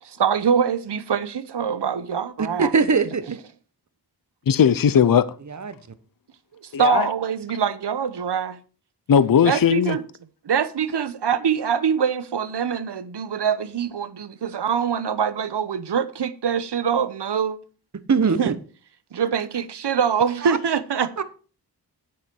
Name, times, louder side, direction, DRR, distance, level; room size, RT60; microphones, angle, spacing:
voice 1, 0.0-2.7 6.6-8.6 9.4-10.0 10.4-17.6 18.4-18.5 19.1-21.1, right 7 dB, 80° right, 1.0 m, -24 dB
voice 2, 2.6-3.4 5.5-5.7 18.1-18.6 20.4-20.6 21.2-21.3, right 5 dB, 45° right, 1.2 m, -21 dB
voice 3, 4.5-5.3 6.7-7.1 9.1-10.0, left 8 dB, 55° left, 0.7 m, -18 dB
9.6 x 9.5 x 4.6 m
wide cardioid pair, 100°, 40 cm